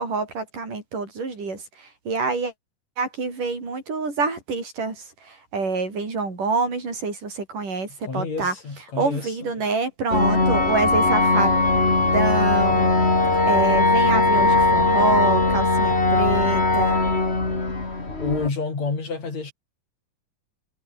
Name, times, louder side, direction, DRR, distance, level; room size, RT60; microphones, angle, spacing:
voice 1, 0.0-1.6 2.1-2.5 3.0-7.9 8.1-8.5 9.0-11.5 12.0-12.9 13.5-17.0, right 4 dB, 75° right, 8.6 m, -26 dB
voice 2, 8.0-9.7 18.2-19.5, left 4 dB, 55° left, 6.6 m, -29 dB
sound 1, 10.1-18.5, left 3 dB, 20° left, 3.2 m, -19 dB
omnidirectional pair, 3.7 m